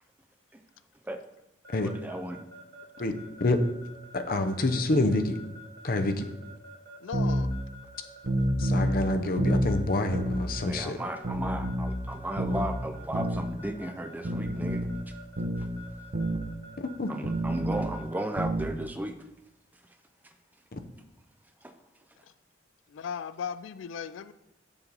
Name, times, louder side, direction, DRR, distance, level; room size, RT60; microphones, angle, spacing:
Keyboard (musical) / Alarm, 1.6-18.3, equal, 55° right, 1.3 m, -49 dB
voice 1, 1.8-2.5 10.6-14.8 17.1-19.2 20.2-20.3 21.6-21.7, right 1 dB, 10° right, 6 dB, 0.4 m, -35 dB
voice 2, 4.1-5.4 5.8-6.3 8.6-11.0 16.8-17.1 20.7-20.8, left 2 dB, 50° left, 7 dB, 0.7 m, -27 dB
voice 3, 7.0-7.5 22.9-24.3, left 7 dB, 80° left, 14 dB, 0.3 m, -37 dB
sound 1, 7.1-7.5 8.2-9.0 9.4-9.7 10.1-10.5 11.2-12.0 12.4-12.7 13.1-13.5 14.3-14.9 15.4-15.7 16.1-16.4 17.2-17.9 18.4-18.7, right 1 dB, 75° right, 0.9 m, -28 dB
7.1 x 7.0 x 4.0 m, 0.86 s
head